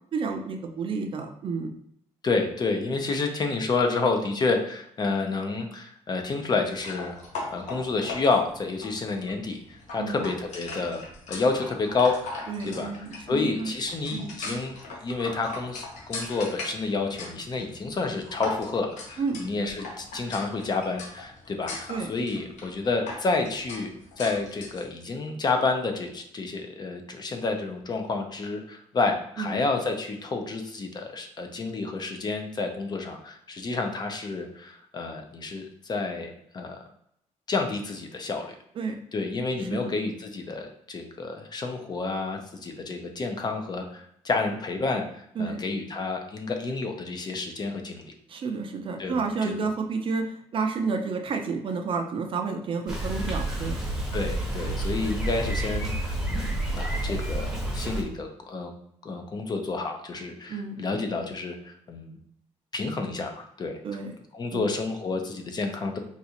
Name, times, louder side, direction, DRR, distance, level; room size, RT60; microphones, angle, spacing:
voice 1, 0.1-1.7 10.0-10.2 12.5-13.7 14.1-14.5 19.2-19.5 21.9-22.1 29.4-29.5 38.8-39.0 39.6-39.9 45.4-45.6 48.3-53.8 60.5-60.8 63.8-64.1 64.5-64.7, right 4 dB, 45° right, 5 dB, 0.4 m, -30 dB
voice 2, 2.2-7.2 7.5-11.0 11.3-12.9 13.3-36.8 37.5-38.5 39.1-45.0 45.4-48.1 49.0-49.7 54.1-58.7 59.0-62.2 62.7-63.8 64.3-66.0, left 3 dB, 35° left, 4 dB, 0.5 m, -29 dB
sound 1, 6.8-24.9, left 3 dB, 80° left, 0.8 m, -40 dB
Bicycle, 52.9-58.0, right 1 dB, 5° right, 0.8 m, -29 dB
4.0 x 2.4 x 2.8 m, 0.71 s
cardioid pair, 115°, 12 cm